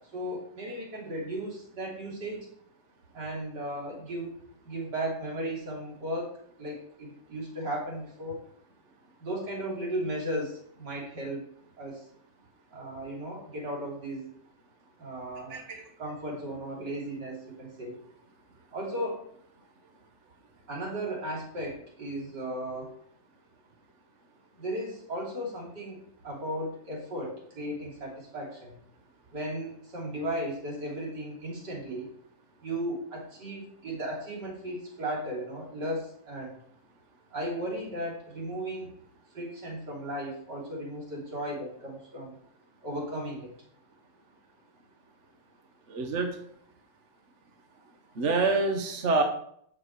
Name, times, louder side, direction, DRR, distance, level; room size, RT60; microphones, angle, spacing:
voice 1, 0.1-2.5 3.1-6.3 6.6-8.4 9.2-11.5 11.8-12.0 12.7-14.3 15.0-15.6 16.0-18.0 18.7-19.2 20.7-22.9 24.6-26.0 26.2-28.8 29.3-32.1 32.6-36.6 37.3-38.9 39.3-42.4 42.8-43.5, right 1 dB, 60° right, -3 dB, 3.5 m, -35 dB
voice 2, 15.5-15.8 45.9-46.4 48.2-49.2, right 3 dB, 45° right, 4 dB, 1.2 m, -26 dB
8.4 x 6.6 x 4.6 m, 0.67 s
omnidirectional pair, 2.1 m